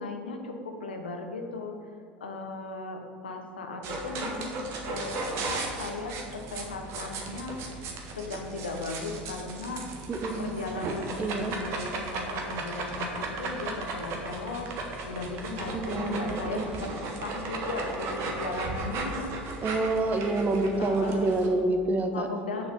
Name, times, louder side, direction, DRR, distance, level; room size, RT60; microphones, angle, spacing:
voice 1, 0.0-9.8 10.4-19.3 19.6-20.2 20.7-21.4 22.1-22.7, left 3 dB, 85° left, 4 dB, 1.0 m, -37 dB
sound 1, 3.8-21.5, right 3 dB, 55° right, 1.5 m, -36 dB
voice 2, 10.1-10.5 11.2-11.6 15.7-16.7 19.6-22.3, right 2 dB, 30° right, 6 dB, 1.1 m, -27 dB
7.0 x 6.7 x 5.5 m, 2.2 s
hypercardioid pair, 80°, 5 cm